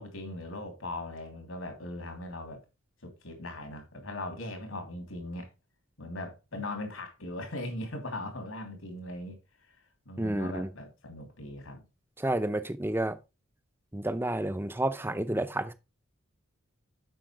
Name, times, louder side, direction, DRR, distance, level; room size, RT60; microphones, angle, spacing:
voice 1, 0.0-2.6 3.0-5.5 6.0-9.8 10.0-11.8, left 1 dB, 80° left, 3.0 m, -39 dB
voice 2, 10.2-10.7 12.2-13.2 13.9-15.7, right 1 dB, 10° right, 0.6 m, -30 dB
7.8 x 5.7 x 4.6 m
head